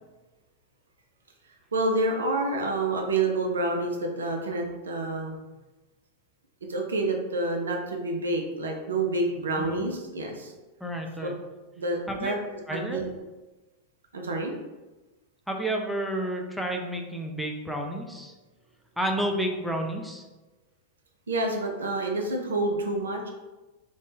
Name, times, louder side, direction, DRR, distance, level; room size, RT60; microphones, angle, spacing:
voice 1, 1.7-5.3 6.7-10.5 11.2-11.3 11.8-12.4 12.7-13.0 14.1-14.5 21.3-23.3, right 2 dB, 70° right, 2 dB, 0.5 m, -28 dB
voice 2, 10.8-11.3 12.1-12.4 12.7-13.0 15.5-18.3 19.0-20.2, right 1 dB, ahead, 1 dB, 0.4 m, -30 dB
2.6 x 2.2 x 3.3 m, 1.2 s
figure-of-eight pair, 90°, 0 cm